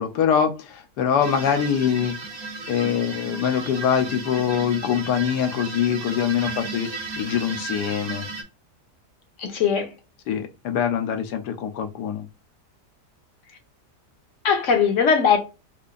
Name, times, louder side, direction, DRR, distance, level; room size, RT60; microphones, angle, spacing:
voice 1, 0.0-2.2 2.7-6.9 7.2-8.3 10.3-12.3, left 8 dB, 85° left, 1.3 m, -23 dB
sound 1, 1.2-8.4, right 3 dB, 50° right, 0.5 m, -34 dB
voice 2, 9.4-9.9 14.4-15.4, left 6 dB, 60° left, 0.9 m, -19 dB
4.7 x 2.4 x 2.4 m
omnidirectional pair, 1.7 m